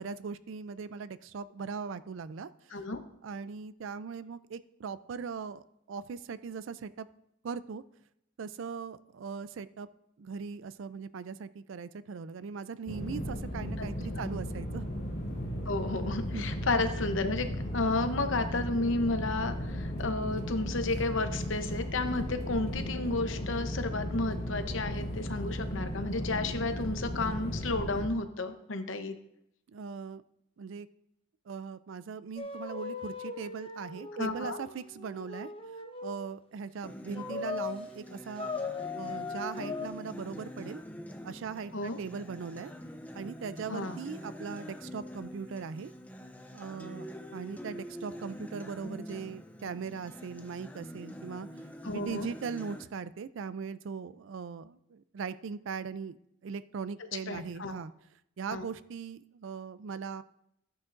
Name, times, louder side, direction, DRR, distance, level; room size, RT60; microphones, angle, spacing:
voice 1, 0.0-2.7 3.2-7.1 7.4-7.8 8.4-9.9 10.2-14.8 16.3-16.5 29.7-30.2 30.6-30.9 31.5-35.5 36.0-38.5 38.9-40.8 41.2-42.7 43.1-45.9 46.5-47.1 47.3-51.5 51.9-57.9 58.4-60.2, right 5 dB, 70° right, 15 dB, 0.4 m, -39 dB
voice 2, 2.7-3.0 13.8-13.9 14.1-14.3 15.7-29.2 34.2-34.6 41.7-42.0 43.7-44.0 51.8-52.3 57.3-57.7 58.5-58.6, left 2 dB, 70° left, 8 dB, 0.8 m, -32 dB
sound 1, 12.9-28.1, equal, 50° left, 2.2 m, -35 dB
sound 2, 32.4-36.3 37.1-37.8 38.4-39.9, left 4 dB, 25° left, 0.9 m, -39 dB
Acoustic guitar, 36.8-52.8, equal, 5° left, 0.5 m, -45 dB
14.0 x 9.7 x 2.6 m, 0.78 s
head